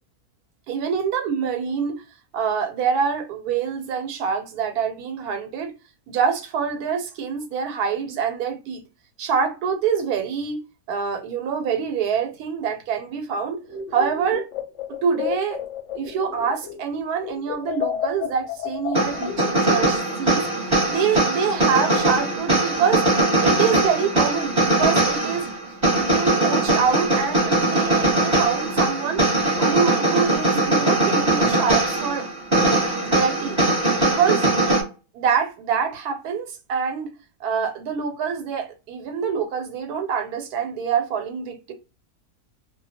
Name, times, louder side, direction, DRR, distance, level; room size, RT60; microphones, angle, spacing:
voice 1, 0.7-2.0 2.3-5.7 6.1-8.8 9.2-10.6 10.9-13.6 13.9-14.5 14.9-15.6 15.9-23.0 23.4-25.5 26.0-29.2 29.6-32.3 33.0-33.6 34.0-34.5 35.1-37.1 37.4-41.7, right 6 dB, 85° right, 1.1 m, -25 dB
sound 1, 13.6-16.9 17.2-20.2, left 8 dB, 65° left, 0.8 m, -31 dB
sound 2, 18.9-34.8, right 2 dB, 25° right, 0.9 m, -21 dB
2.4 x 2.2 x 2.7 m
omnidirectional pair, 1.6 m